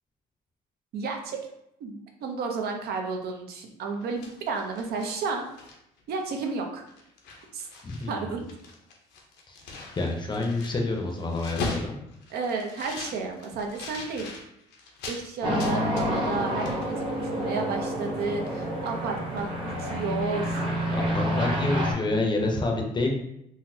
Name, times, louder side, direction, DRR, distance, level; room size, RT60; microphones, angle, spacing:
voice 1, 0.9-1.4 1.8-5.5 6.1-6.8 7.5-7.7 8.1-8.5 12.3-14.3 15.1-20.7, right 4 dB, 70° right, 3 dB, 0.6 m, -32 dB
sound 1, 4.0-6.0 6.4-6.6 6.9-8.1 8.4-15.2 15.6-16.4 16.7-16.8, left 3 dB, 80° left, 0.7 m, -39 dB
voice 2, 7.8-8.3 9.5-9.6 10.0-12.0 20.9-23.1, left 2 dB, 25° left, 2 dB, 0.6 m, -28 dB
sound 2, 15.4-21.9, equal, 30° right, 0.9 m, -28 dB
3.9 x 2.1 x 2.7 m, 0.79 s
cardioid pair, 110°, 17 cm